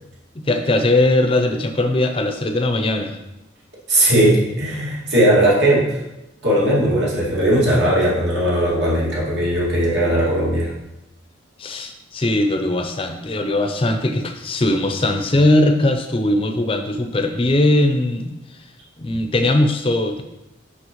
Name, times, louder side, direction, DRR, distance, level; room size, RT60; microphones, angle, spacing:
voice 1, 0.3-3.2 11.6-18.4 19.0-20.2, left 1 dB, 30° left, 6 dB, 0.5 m, -19 dB
voice 2, 3.9-6.0 6.4-10.7, right 1 dB, 70° right, -6 dB, 2.2 m, -18 dB
6.2 x 5.6 x 3.0 m, 0.94 s
head